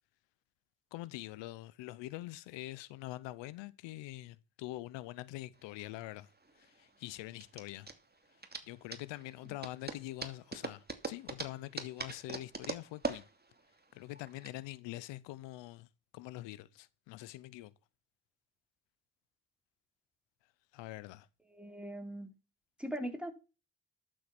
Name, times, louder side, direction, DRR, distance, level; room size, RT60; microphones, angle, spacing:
voice 1, 0.9-6.3 6.5-7.9 8.7-13.3 13.9-17.7 20.7-21.3, left 16 dB, 90° left, 0.9 m, -44 dB
sound 1, 5.6-14.5, right 3 dB, 25° right, 2.6 m, -43 dB
voice 2, 21.5-22.3 22.8-23.3, equal, ahead, 4.5 m, -40 dB
11.5 x 7.7 x 6.1 m
supercardioid pair, 50°, 42 cm